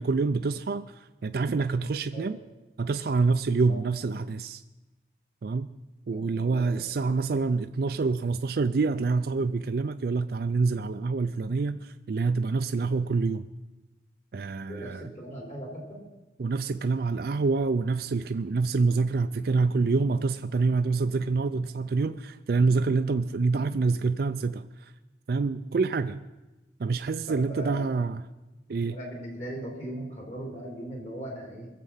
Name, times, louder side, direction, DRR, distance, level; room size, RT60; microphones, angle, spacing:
voice 1, 0.0-2.4 2.8-4.6 5.4-5.7 6.1-13.4 14.3-15.1 16.4-24.9 25.3-26.2 26.8-28.2 28.7-29.0, right 4 dB, 55° right, 9 dB, 0.4 m, -26 dB
voice 2, 6.1-6.8 14.7-16.0 27.3-27.8 28.9-31.7, right 1 dB, 40° left, 0 dB, 3.7 m, -39 dB
21.5 x 7.5 x 5.6 m, 1.1 s
head